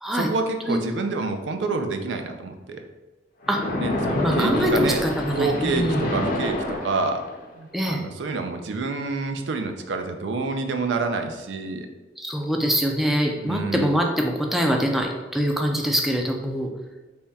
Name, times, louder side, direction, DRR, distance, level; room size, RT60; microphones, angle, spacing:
voice 1, 0.1-2.8 3.8-5.0 5.3-7.2 7.5-11.9 13.4-13.9, right 3 dB, 85° right, 5 dB, 0.4 m, -28 dB
Splash splatter, 3.4-7.5, left 1 dB, 50° left, 0.6 m, -27 dB
voice 2, 4.2-6.1 7.7-8.0 12.2-16.7, equal, ahead, 1 dB, 0.3 m, -24 dB
3.5 x 2.2 x 4.0 m, 1.2 s
head